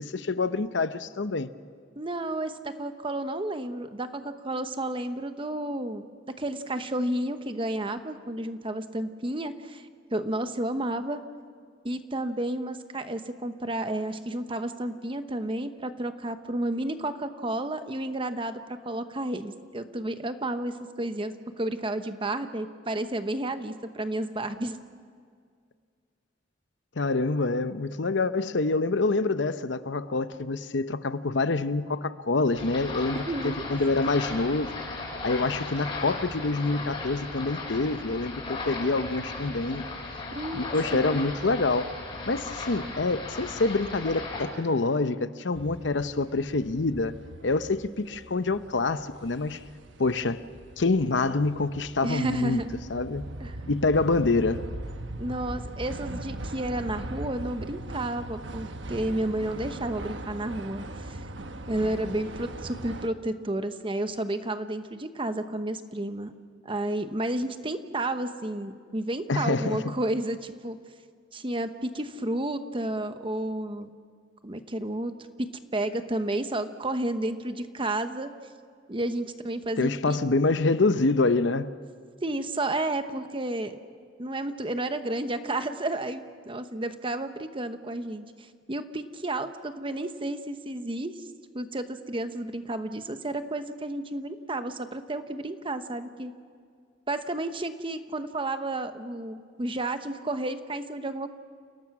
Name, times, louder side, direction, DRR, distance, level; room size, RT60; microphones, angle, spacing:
voice 1, 0.0-1.5 27.0-34.8 35.2-39.8 40.5-41.9 42.3-47.1 47.4-49.6 50.0-50.4 50.8-52.6 52.9-53.3 53.7-54.6 69.3-69.9 79.8-81.7, left 3 dB, 70° left, 12 dB, 0.8 m, -26 dB
voice 2, 2.0-6.0 6.4-11.2 11.8-24.8 33.1-33.6 40.3-41.2 52.0-52.7 53.4-53.6 55.2-61.3 61.7-66.3 66.6-70.8 71.3-73.9 74.4-75.1 75.4-78.3 78.9-80.2 82.2-83.7 84.2-91.2 91.5-96.3 97.1-101.3, right 1 dB, 30° right, 9 dB, 1.0 m, -31 dB
sound 1, 32.5-44.5, left 3 dB, 30° left, 6.6 m, -36 dB
sound 2, 45.5-63.1, right 1 dB, 75° right, 1.2 m, -40 dB
29.5 x 18.0 x 6.1 m, 2.1 s
head